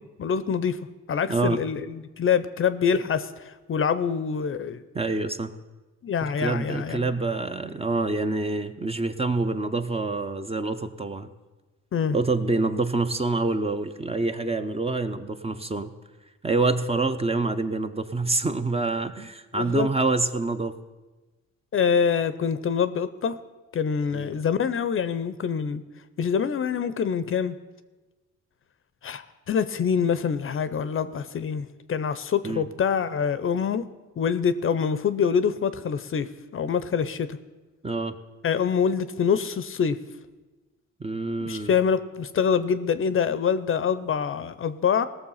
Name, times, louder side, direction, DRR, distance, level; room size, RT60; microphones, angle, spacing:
voice 1, 0.2-0.8 1.1-4.8 6.0-7.0 11.9-12.2 19.5-19.9 21.7-23.4 23.7-25.8 26.2-27.6 29.0-33.9 34.2-37.4 38.4-40.0 41.4-45.1, left 7 dB, 45° left, 13 dB, 0.6 m, -25 dB
voice 2, 4.9-5.5 6.2-11.3 12.1-15.9 16.4-20.7 24.1-24.3 32.4-32.7 37.8-38.1 41.0-41.7, right 3 dB, 20° right, 8 dB, 0.7 m, -26 dB
17.5 x 6.8 x 5.6 m, 1.2 s
cardioid pair, 90°, 30 cm